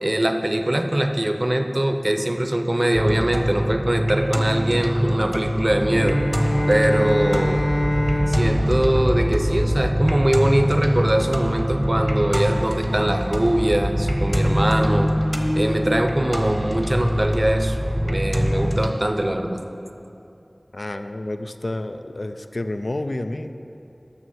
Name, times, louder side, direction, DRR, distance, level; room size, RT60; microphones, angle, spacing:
voice 1, 0.0-6.2 6.7-7.6 8.3-15.1 15.5-17.8 18.0-19.6, right 1 dB, 35° right, 6 dB, 0.5 m, -22 dB
sound 1, 2.9-18.9, equal, 5° right, 0.8 m, -23 dB
Bowed string instrument, 5.8-10.2, equal, 25° left, 0.9 m, -25 dB
voice 2, 20.7-23.5, left 1 dB, 65° left, 8 dB, 0.3 m, -29 dB
7.0 x 6.4 x 6.2 m, 2.8 s
wide cardioid pair, 45°, 0 cm